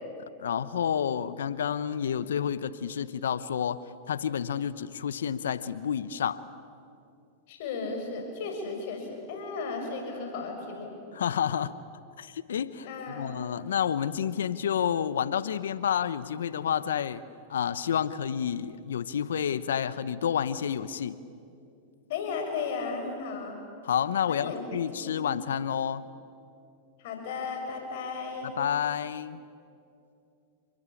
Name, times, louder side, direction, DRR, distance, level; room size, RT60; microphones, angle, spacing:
voice 1, 0.4-3.8 4.1-6.4 11.1-11.7 12.2-17.2 17.5-21.2 23.8-26.0 28.4-29.4, left 8 dB, 80° left, 16 dB, 0.9 m, -29 dB
voice 2, 7.5-10.9 12.8-13.4 22.1-23.6 24.3-24.6 25.0-25.3 27.0-28.5, left 4 dB, 65° left, 3 dB, 6.9 m, -35 dB
29.5 x 22.0 x 8.5 m, 2.6 s
hypercardioid pair, 105°, 0 cm